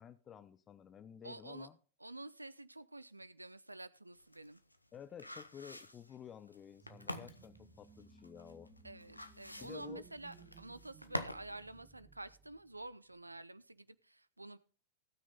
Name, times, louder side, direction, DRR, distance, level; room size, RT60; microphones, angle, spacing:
voice 1, 0.0-1.7 4.9-8.7 9.6-10.0, left 9 dB, 25° left, 0.7 m, -52 dB
voice 2, 1.2-1.7 2.0-4.6 8.8-14.6, right 2 dB, 85° right, 0.6 m, -49 dB
sound 1, 4.1-11.5 11.8-11.9, left 1 dB, 85° left, 0.8 m, -46 dB
sound 2, 6.8-13.3, right 4 dB, 15° right, 3.3 m, -60 dB
17.0 x 6.2 x 4.0 m
figure-of-eight pair, 90°, 0 cm